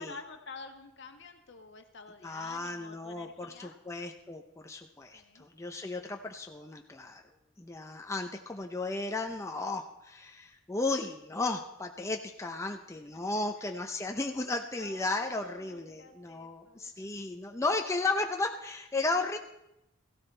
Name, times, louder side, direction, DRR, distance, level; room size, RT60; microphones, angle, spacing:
voice 1, 0.0-3.8 5.1-5.5 12.7-12.8 13.6-13.8 14.7-16.9, left 4 dB, 65° left, 5 dB, 1.3 m, -49 dB
voice 2, 2.2-7.2 7.6-19.4, left 3 dB, 15° left, 3 dB, 0.6 m, -34 dB
17.0 x 15.0 x 3.3 m, 0.85 s
head